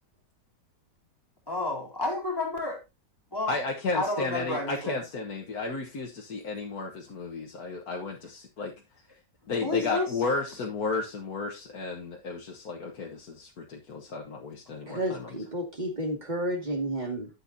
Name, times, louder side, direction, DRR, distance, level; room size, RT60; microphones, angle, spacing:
voice 1, 1.5-2.8 3.3-3.6 3.9-5.0 9.6-10.1, left 2 dB, 15° left, -1 dB, 3.8 m, -30 dB
voice 2, 3.5-8.7 9.5-15.3, left 3 dB, 60° left, -1 dB, 1.8 m, -33 dB
voice 3, 14.9-17.3, right 1 dB, 25° right, 3 dB, 2.2 m, -31 dB
12.0 x 7.8 x 2.7 m, 0.25 s
omnidirectional pair, 1.8 m